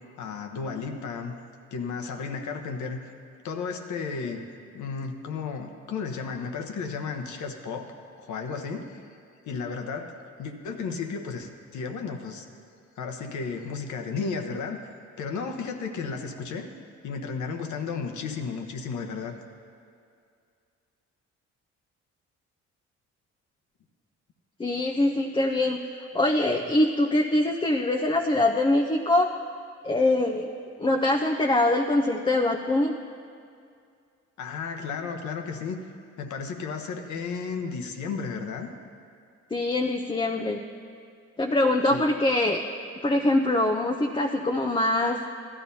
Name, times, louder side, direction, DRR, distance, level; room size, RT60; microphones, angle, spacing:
voice 1, 0.2-1.3 1.7-3.0 3.4-4.5 4.7-7.9 8.2-9.1 9.5-12.5 13.0-14.8 15.2-16.7 17.0-19.4 34.4-35.8 36.2-38.7 41.9-42.0, left 5 dB, 75° left, 5 dB, 1.1 m, -33 dB
voice 2, 24.6-25.8 26.1-29.3 29.8-30.5 30.8-32.9 39.5-40.6 41.4-42.7 43.0-45.2, left 1 dB, 15° left, 2 dB, 0.6 m, -23 dB
15.5 x 12.0 x 2.8 m, 2.4 s
cardioid pair, 90°, 30 cm